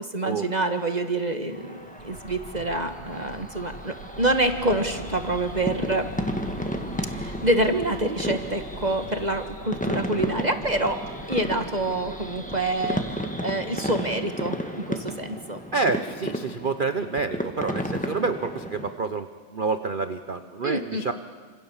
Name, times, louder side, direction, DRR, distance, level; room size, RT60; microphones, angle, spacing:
voice 1, 0.1-6.1 7.1-14.6 14.9-15.6 20.6-21.1, right 2 dB, 25° right, 6 dB, 1.4 m, -27 dB
sound 1, 1.5-18.9, equal, 5° left, 1.5 m, -33 dB
sound 2, 2.0-14.3 14.8-14.9, right 3 dB, 80° right, 3.0 m, -46 dB
sound 3, 4.2-9.5, left 5 dB, 25° left, 1.8 m, -42 dB
voice 2, 15.7-21.1, right 4 dB, 55° right, 9 dB, 0.5 m, -28 dB
29.0 x 26.5 x 7.3 m, 1.5 s
omnidirectional pair, 2.2 m